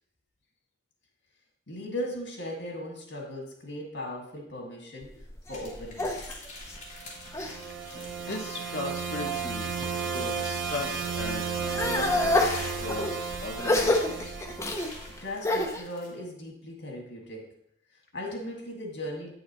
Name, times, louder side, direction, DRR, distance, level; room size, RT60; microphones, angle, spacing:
voice 1, 1.7-6.3 15.2-17.5 17.9-19.3, left 1 dB, 85° left, 1 dB, 1.9 m, -38 dB
sound 1, 5.0-7.6 8.1-8.7 9.3-10.3 10.6-15.8, left 2 dB, 15° left, 0.6 m, -29 dB
sound 2, 5.5-8.4 8.7-11.0 11.8-16.1, left 2 dB, 40° left, 2.2 m, -48 dB
sound 3, 7.0-15.2, right 6 dB, 80° right, 0.8 m, -34 dB
voice 2, 7.9-9.7 10.0-14.4, left 2 dB, 60° left, 0 dB, 0.7 m, -38 dB
8.7 x 6.4 x 3.0 m, 0.71 s
head